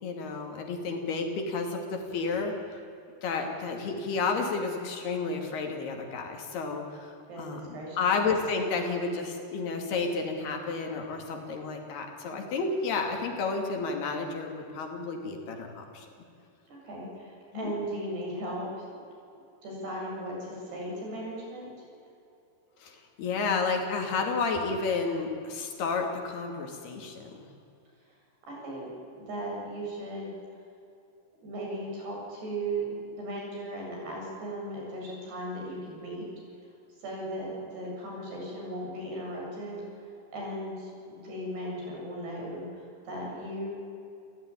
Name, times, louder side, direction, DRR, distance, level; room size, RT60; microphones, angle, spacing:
voice 1, 0.0-2.5 3.2-7.1 7.4-16.1 17.5-17.7 22.8-27.5, left 4 dB, 75° left, 3 dB, 4.6 m, -31 dB
voice 2, 7.3-8.1 16.7-18.7 19.6-21.7 28.5-30.4 31.4-36.3 37.0-43.8, right 1 dB, 90° right, -2 dB, 10.0 m, -37 dB
29.5 x 17.0 x 9.9 m, 2.6 s
omnidirectional pair, 4.6 m